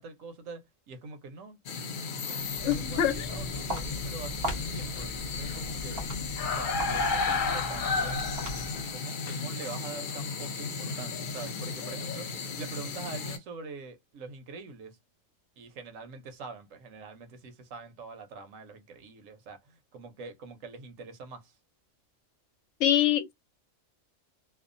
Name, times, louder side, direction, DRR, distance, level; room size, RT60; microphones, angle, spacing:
voice 1, 0.0-1.6 2.1-6.0 6.5-8.3 8.9-15.0 15.6-21.6, right 4 dB, 85° right, 1.1 m, -44 dB
sound 1, 1.7-13.4, left 4 dB, 55° left, 0.6 m, -33 dB
Walk footsteps, 2.5-8.9, left 1 dB, 55° right, 1.0 m, -39 dB
voice 2, 2.7-3.3 22.8-23.3, left 11 dB, 75° left, 1.0 m, -25 dB
2.7 x 2.2 x 2.5 m
omnidirectional pair, 1.3 m